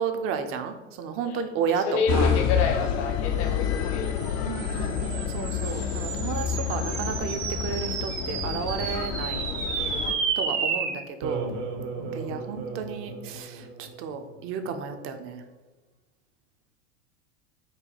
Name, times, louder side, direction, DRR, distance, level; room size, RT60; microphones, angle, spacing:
voice 1, 0.0-2.3 4.5-9.5 10.4-11.5 12.0-15.4, right 6 dB, 35° right, 7 dB, 0.5 m, -32 dB
voice 2, 1.9-4.1 4.3-4.5 9.3-10.1, left 5 dB, 60° left, 4 dB, 1.0 m, -30 dB
Brunnsparken Gothenburg., 2.1-10.1, left 7 dB, 45° left, 0.5 m, -28 dB
sound 1, 3.8-14.4, right 5 dB, 70° right, 0.9 m, -33 dB
4.7 x 2.2 x 4.1 m, 1.1 s
hypercardioid pair, 90°, 37 cm